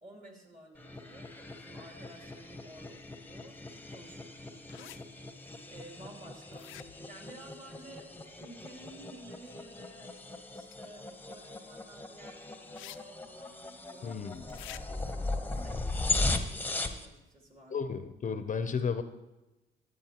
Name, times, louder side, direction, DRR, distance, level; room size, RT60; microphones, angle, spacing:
voice 1, 0.0-5.0 5.7-6.7 7.1-10.2 10.5-17.8, right 2 dB, 40° right, 0 dB, 2.7 m, -53 dB
sound 1, 0.8-17.1, left 2 dB, 10° left, 0.8 m, -38 dB
sound 2, 4.7-5.0 6.5-7.1 10.7-10.8 12.8-13.0 13.3-13.4 14.5-14.8, left 15 dB, 85° left, 0.4 m, -47 dB
voice 2, 14.0-14.4 17.7-19.0, left 6 dB, 40° left, 9 dB, 0.6 m, -33 dB
13.0 x 8.5 x 2.9 m, 1.0 s
cardioid pair, 90°, 20 cm